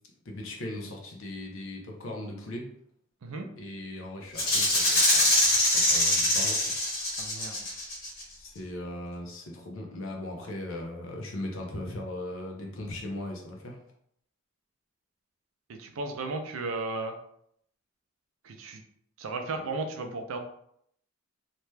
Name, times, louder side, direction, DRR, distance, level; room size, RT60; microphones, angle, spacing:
voice 1, 0.3-2.7 3.6-6.7 7.4-7.7 8.4-13.8, left 1 dB, 70° left, 1 dB, 0.7 m, -39 dB
Rattle (instrument), 4.4-8.2, left 1 dB, 40° left, 1.3 m, -24 dB
voice 2, 7.2-7.6 15.7-17.1 18.4-18.8 19.2-20.4, right 3 dB, 70° right, 5 dB, 0.5 m, -34 dB
2.8 x 2.2 x 3.2 m, 0.70 s
head